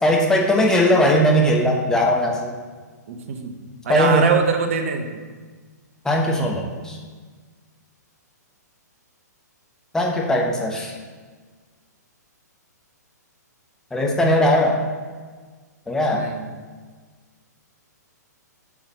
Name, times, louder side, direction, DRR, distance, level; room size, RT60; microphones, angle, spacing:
voice 1, 0.0-2.5 3.9-4.3 6.0-7.0 9.9-10.9 13.9-14.8 15.9-16.3, equal, 5° left, -1 dB, 1.1 m, -19 dB
voice 2, 3.1-5.2 16.1-16.6, right 5 dB, 45° right, 6 dB, 1.0 m, -24 dB
7.1 x 6.4 x 5.5 m, 1.5 s
figure-of-eight pair, 115°, 10 cm